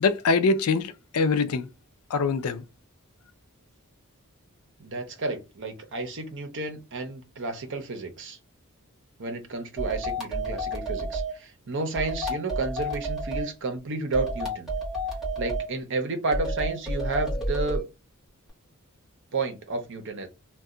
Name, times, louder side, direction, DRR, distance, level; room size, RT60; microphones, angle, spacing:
voice 1, 0.0-1.7 2.1-2.6, left 4 dB, 75° left, 0.4 m, -24 dB
voice 2, 4.8-8.4 9.2-14.7 15.4-17.8 19.3-20.3, right 3 dB, 55° right, 0.8 m, -31 dB
sound 1, 9.8-11.3 11.9-13.5 14.1-15.7 16.3-17.8, right 1 dB, ahead, 1.0 m, -30 dB
2.7 x 2.3 x 3.7 m
head